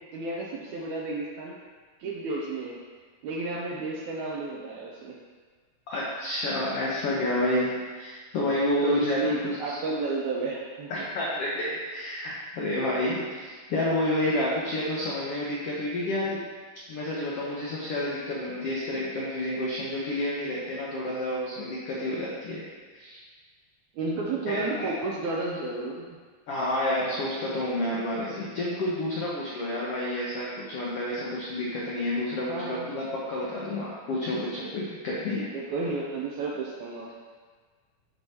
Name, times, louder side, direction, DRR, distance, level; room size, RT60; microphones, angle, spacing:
voice 1, 0.1-1.6 2.0-2.8 3.2-5.2 8.8-11.1 24.0-26.1 32.5-32.9 34.3-34.4 35.4-37.1, right 3 dB, 80° right, -2 dB, 1.7 m, -32 dB
voice 2, 5.9-9.8 10.9-16.4 16.9-22.6 22.9-23.2 24.5-24.9 26.5-35.5, left 1 dB, 80° left, -5 dB, 1.3 m, -29 dB
10.5 x 4.6 x 2.8 m, 1.5 s
omnidirectional pair, 3.9 m